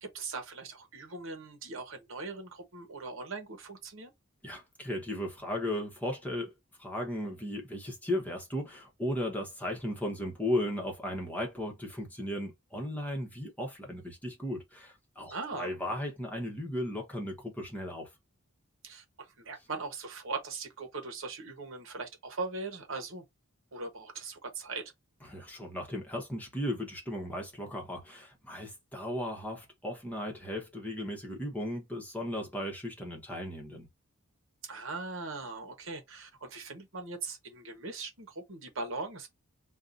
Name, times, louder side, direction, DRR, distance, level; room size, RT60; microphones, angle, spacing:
voice 1, 0.0-4.1 15.3-15.8 18.8-23.2 23.7-24.8 34.7-39.3, right 3 dB, 65° right, 1.0 m, -40 dB
voice 2, 4.4-6.5 6.8-18.1 25.3-33.9, left 1 dB, 5° left, 1.1 m, -36 dB
5.4 x 2.4 x 2.6 m
head